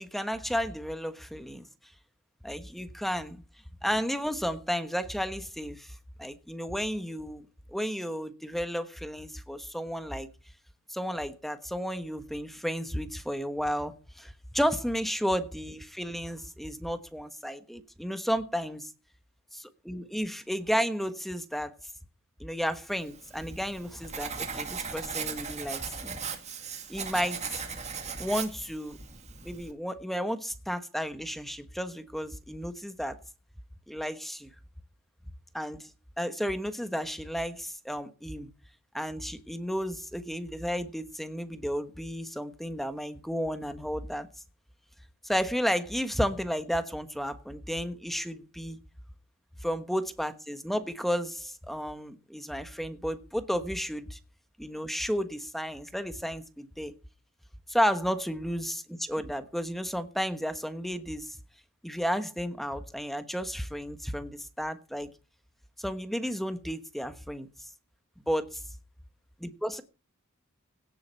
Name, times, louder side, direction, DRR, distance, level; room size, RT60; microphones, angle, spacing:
voice 1, 0.0-1.7 2.4-3.4 3.8-7.4 7.7-10.3 10.9-18.9 19.6-21.7 22.4-26.2 26.9-27.6 28.2-29.0 29.4-33.2 33.9-34.5 35.5-35.9 36.2-38.5 38.9-44.3 45.2-48.8 49.6-54.2 54.6-56.9 57.7-61.4 61.8-65.1 65.8-67.5 68.3-68.6 69.4-69.8, equal, ahead, 10 dB, 1.2 m, -32 dB
Writing, 23.0-29.7, right 6 dB, 30° right, 2.2 m, -38 dB
17.0 x 7.9 x 5.4 m, 0.34 s
head